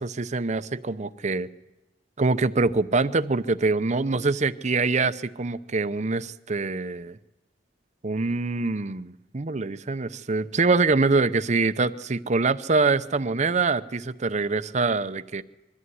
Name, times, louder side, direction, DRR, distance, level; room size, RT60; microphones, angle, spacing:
voice 1, 0.0-1.5 2.2-7.2 8.0-15.4, right 3 dB, 40° right, 13 dB, 0.7 m, -24 dB
22.5 x 14.0 x 9.5 m, 1.0 s
head